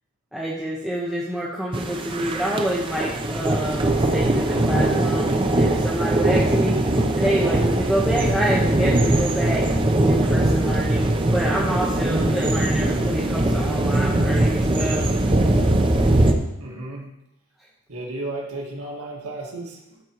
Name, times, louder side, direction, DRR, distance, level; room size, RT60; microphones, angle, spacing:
voice 1, 0.3-6.8 7.1-9.6 10.1-15.1, right 1 dB, ahead, -6 dB, 1.0 m, -27 dB
sound 1, 1.7-16.3, right 1 dB, 25° right, 0.7 m, -21 dB
voice 2, 16.6-17.1 17.9-20.0, right 2 dB, 80° right, -2 dB, 2.1 m, -33 dB
13.0 x 4.5 x 4.7 m, 0.88 s
head